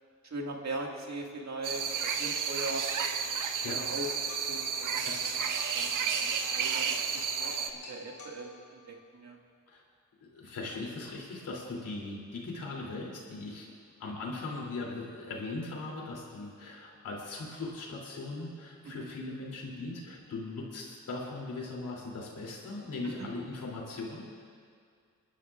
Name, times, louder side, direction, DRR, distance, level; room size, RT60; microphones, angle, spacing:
voice 1, 0.2-2.8 3.7-4.1 4.5-5.1 5.6-9.4 18.8-19.1 23.0-23.3, right 2 dB, 60° right, 0 dB, 2.0 m, -40 dB
sound 1, 1.6-7.7, right 6 dB, 90° right, 0.8 m, -32 dB
sound 2, 4.0-9.0, left 3 dB, 70° left, 4.1 m, -50 dB
voice 2, 10.2-13.7 14.0-24.5, left 3 dB, 90° left, -3 dB, 3.1 m, -39 dB
29.0 x 12.0 x 2.5 m, 2.2 s
cardioid pair, 70°, 31 cm